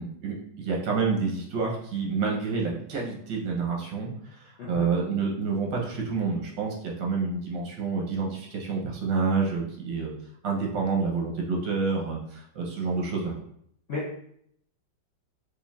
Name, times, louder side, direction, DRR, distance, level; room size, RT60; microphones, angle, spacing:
voice 1, 0.0-4.1 4.7-10.2 10.4-13.3, right 4 dB, 90° right, -1 dB, 1.6 m, -28 dB
voice 2, 4.6-4.9 13.9-14.1, left 3 dB, 65° left, -6 dB, 0.6 m, -33 dB
5.3 x 2.4 x 2.3 m, 0.69 s
omnidirectional pair, 1.9 m